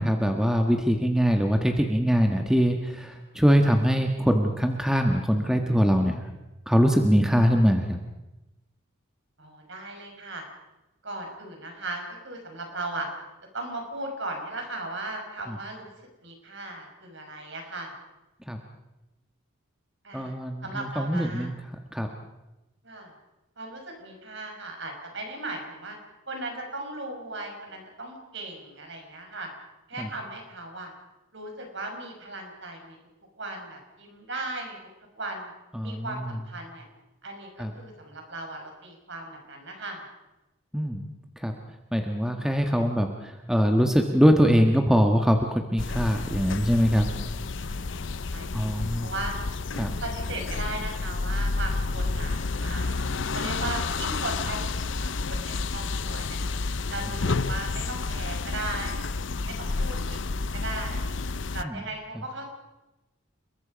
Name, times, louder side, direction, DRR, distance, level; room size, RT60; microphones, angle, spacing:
voice 1, 0.0-6.2 6.7-8.0 15.5-15.6 18.5-18.6 20.1-21.6 21.9-22.1 30.0-30.1 35.7-36.3 37.6-37.7 40.7-41.1 41.4-41.5 41.9-47.1 48.5-49.1 49.8-49.9 61.6-61.8, equal, 5° right, 3 dB, 1.4 m, -23 dB
voice 2, 9.4-10.4 11.0-13.1 13.5-15.9 16.2-17.9 20.0-20.3 20.6-21.5 22.8-23.1 23.6-26.0 26.3-29.5 29.9-30.9 31.3-33.0 33.4-34.8 35.1-35.5 35.8-36.9 37.2-40.0 47.5-49.3 50.0-53.0 53.3-56.4 56.9-59.1 59.5-61.1 61.5-62.5, right 2 dB, 60° right, 3 dB, 5.6 m, -37 dB
sound 1, 45.8-61.6, left 3 dB, 60° left, 0.7 m, -30 dB
30.0 x 21.5 x 5.2 m, 1.0 s
head